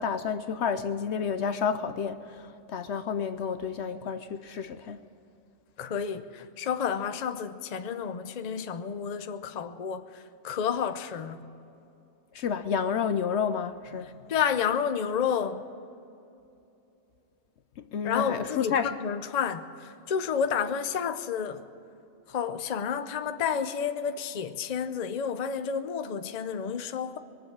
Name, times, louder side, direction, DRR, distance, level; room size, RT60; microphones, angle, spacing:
voice 1, 0.0-5.0 12.3-14.1 17.9-19.0, left 7 dB, 65° left, 0.9 m, -30 dB
voice 2, 5.8-11.4 14.3-15.6 18.0-21.6 22.3-27.2, left 7 dB, 40° left, 0.6 m, -30 dB
22.0 x 7.6 x 8.7 m
omnidirectional pair, 1.3 m